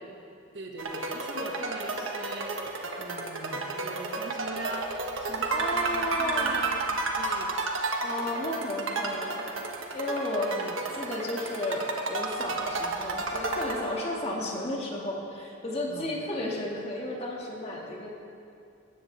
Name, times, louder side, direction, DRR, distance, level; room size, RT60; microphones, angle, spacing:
voice 1, 0.5-2.5 3.0-4.9 5.2-6.8 7.1-7.5 8.5-8.6 10.3-10.8 15.9-16.1, right 1 dB, 60° right, 1 dB, 1.6 m, -40 dB
sound 1, 0.8-14.4, right 3 dB, 80° right, 1.3 m, -32 dB
voice 2, 5.4-6.8 8.0-9.4 9.9-10.5 11.0-18.1, left 1 dB, 30° left, -2 dB, 1.9 m, -33 dB
17.0 x 14.5 x 3.4 m, 2.5 s
head